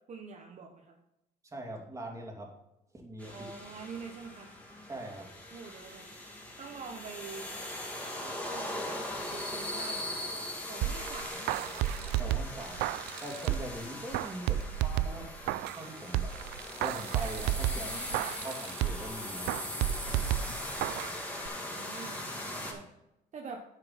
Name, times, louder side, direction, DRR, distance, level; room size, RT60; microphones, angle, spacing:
voice 1, 0.1-1.0 3.3-4.5 5.5-6.1 6.6-7.6 8.2-8.9 9.3-10.1 10.7-11.8 14.4-14.9 17.7-18.2 21.5-22.2 22.5-22.9 23.3-23.6, right 5 dB, 45° right, 2 dB, 1.1 m, -46 dB
voice 2, 1.4-2.5 2.9-3.5 4.8-5.3 12.2-13.0 13.2-16.4 16.8-17.9 18.4-19.9 20.5-20.6 22.6-22.7, right 1 dB, 20° right, 1 dB, 2.6 m, -42 dB
sound 1, 3.2-22.7, left 1 dB, 10° left, 2.4 m, -40 dB
sound 2, 10.8-13.8 14.1-15.8 16.1-19.1 19.5-21.2 21.5-21.6, right 13 dB, 80° right, 0.4 m, -32 dB
10.0 x 6.7 x 4.1 m, 0.86 s
cardioid pair, 110°, 17 cm